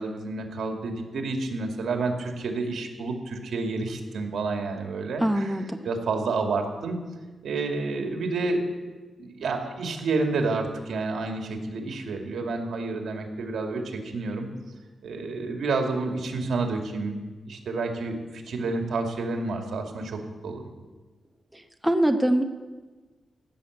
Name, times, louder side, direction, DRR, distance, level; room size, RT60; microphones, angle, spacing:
voice 1, 0.0-5.6 5.8-7.0 7.4-8.6 9.2-14.5 15.0-17.2 17.5-20.6, right 3 dB, 85° right, 3 dB, 2.2 m, -29 dB
voice 2, 5.2-5.8 21.5-22.4, right 1 dB, 5° right, 5 dB, 0.8 m, -24 dB
16.0 x 6.9 x 9.7 m, 1.3 s
wide cardioid pair, 140°, 0 cm